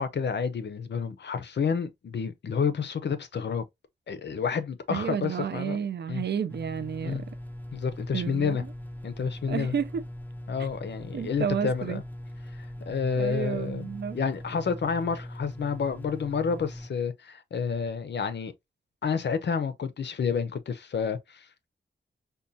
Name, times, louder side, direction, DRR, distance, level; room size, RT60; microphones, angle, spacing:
voice 1, 0.0-3.6 4.1-5.8 6.1-6.2 7.0-7.2 7.7-8.6 9.0-9.7 10.5-12.0 12.9-13.9 14.1-18.5 19.0-21.7, left 6 dB, 65° left, 0.6 m, -29 dB
voice 2, 4.9-7.2 8.1-8.7 9.5-10.0 10.6-10.7 11.1-12.0 13.2-14.2, right 7 dB, 60° right, 0.4 m, -31 dB
sound 1, 6.5-16.9, left 1 dB, 10° left, 0.4 m, -41 dB
5.2 x 2.2 x 2.6 m
wide cardioid pair, 150°, 19 cm